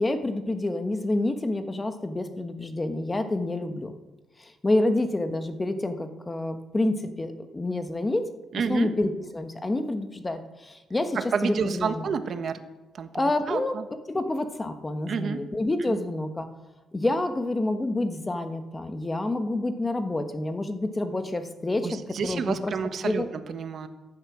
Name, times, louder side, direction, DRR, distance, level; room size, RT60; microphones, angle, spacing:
voice 1, 0.0-3.9 4.4-8.2 8.7-12.1 13.1-13.7 14.1-16.5 16.9-22.7 23.0-23.3, left 2 dB, 20° left, 8 dB, 1.2 m, -28 dB
voice 2, 8.5-8.9 11.1-12.6 12.9-13.1 13.5-13.8 15.1-15.4 15.9-16.0 21.8-23.9, right 6 dB, 55° right, 9 dB, 1.3 m, -30 dB
14.5 x 11.0 x 6.1 m, 1.1 s
cardioid pair, 90°, 0 cm